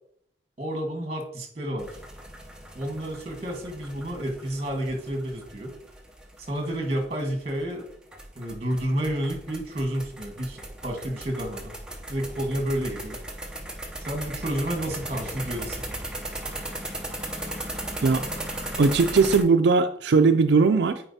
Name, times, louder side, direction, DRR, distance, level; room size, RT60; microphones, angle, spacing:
voice 1, 0.6-1.9 2.7-5.7 6.4-7.8 8.3-11.7 12.1-13.2 14.0-15.8, right 1 dB, 35° right, 3 dB, 1.4 m, -30 dB
sound 1, 1.8-19.4, right 1 dB, 5° right, 0.6 m, -37 dB
voice 2, 18.8-21.0, right 4 dB, 80° right, 6 dB, 0.4 m, -19 dB
8.8 x 4.5 x 2.7 m, 0.67 s
head